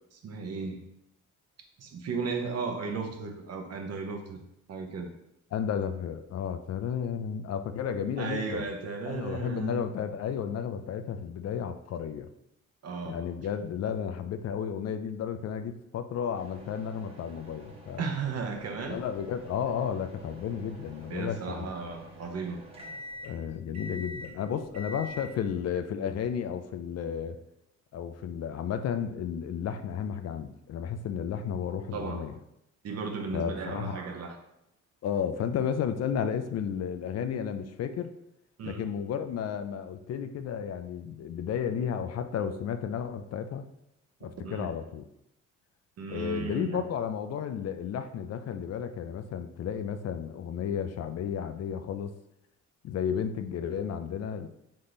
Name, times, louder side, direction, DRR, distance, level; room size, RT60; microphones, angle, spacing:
voice 1, 0.1-0.8 1.8-4.4 4.7-5.1 8.2-9.8 12.8-13.3 18.0-19.0 21.1-22.6 31.9-32.2 32.8-34.4 38.6-38.9 44.2-44.7 46.0-46.9, right 4 dB, 55° right, 4 dB, 0.8 m, -35 dB
voice 2, 5.5-8.7 9.1-12.3 13.1-18.0 18.9-21.7 23.2-27.4 27.9-32.3 33.3-34.0 35.0-38.1 38.6-43.7 44.2-45.0 46.1-52.1 52.8-54.5, left 8 dB, 55° left, 9 dB, 0.4 m, -33 dB
sound 1, 16.3-25.5, left 1 dB, 20° right, 0.9 m, -46 dB
3.6 x 3.1 x 4.0 m, 0.81 s
cardioid pair, 90°, 30 cm